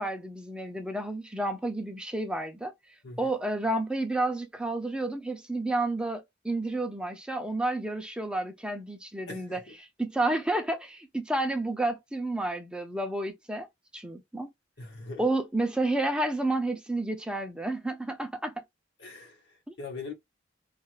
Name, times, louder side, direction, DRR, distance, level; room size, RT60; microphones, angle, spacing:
voice 1, 0.0-2.7 3.2-9.6 10.0-13.7 13.9-14.5 15.2-18.5, right 2 dB, 5° right, 0.5 m, -30 dB
voice 2, 9.3-9.7 14.8-15.2 19.0-20.1, left 3 dB, 60° left, 0.9 m, -42 dB
2.4 x 2.4 x 3.0 m
head